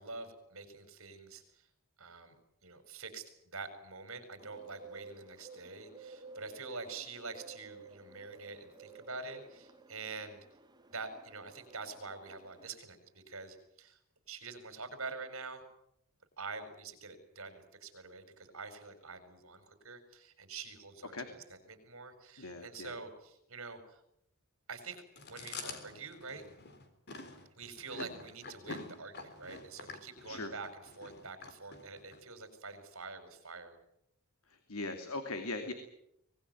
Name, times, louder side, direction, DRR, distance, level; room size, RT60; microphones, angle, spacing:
voice 1, 0.0-1.7 2.0-2.4 2.6-10.4 10.9-14.0 14.3-15.6 16.4-24.0 24.7-25.0 25.3-26.4 27.6-33.8, right 4 dB, 70° right, 9 dB, 5.2 m, -46 dB
Bird, 4.4-12.7, right 3 dB, 20° right, 1.7 m, -54 dB
voice 2, 22.4-23.0 30.3-30.5 34.5-35.7, left 2 dB, 80° left, 7 dB, 2.6 m, -40 dB
Chewing mastication, 25.2-32.2, left 3 dB, 50° left, 3.7 m, -47 dB
24.5 x 19.5 x 9.3 m, 0.78 s
head